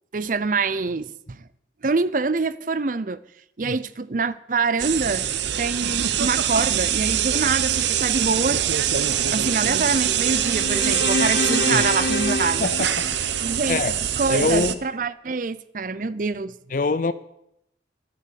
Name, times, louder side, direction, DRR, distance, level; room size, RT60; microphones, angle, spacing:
voice 1, 0.1-1.4 1.8-3.2 3.6-5.2 5.6-8.6 9.3-12.7 13.4-13.8 14.2-16.5, right 4 dB, 45° right, 0.6 m, -25 dB
sound 1, 4.8-14.7, right 9 dB, 75° right, 0.8 m, -23 dB
sound 2, 10.2-13.6, left 2 dB, 65° left, 1.2 m, -28 dB
voice 2, 12.6-13.1 13.7-14.0 14.3-14.8 16.7-17.1, left 3 dB, 45° left, 0.5 m, -24 dB
13.0 x 9.5 x 6.9 m
head